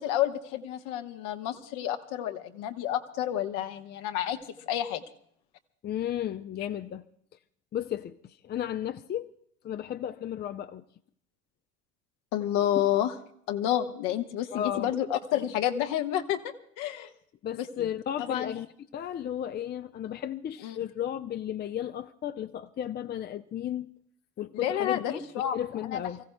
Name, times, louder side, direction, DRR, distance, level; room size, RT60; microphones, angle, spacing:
voice 1, 0.0-4.4 4.7-5.0 12.3-13.1 13.5-16.4 16.8-17.1 17.6-17.7 18.3-18.5 20.6-20.8 24.5-25.6 25.9-26.0, left 11 dB, 60° left, 1.2 m, -29 dB
voice 2, 5.8-7.0 7.7-9.3 9.6-10.8 14.5-14.9 17.4-18.7 18.9-23.9 24.4-25.2 25.5-26.2, left 10 dB, 30° left, 0.6 m, -34 dB
29.0 x 16.0 x 2.2 m
figure-of-eight pair, 65°, 35 cm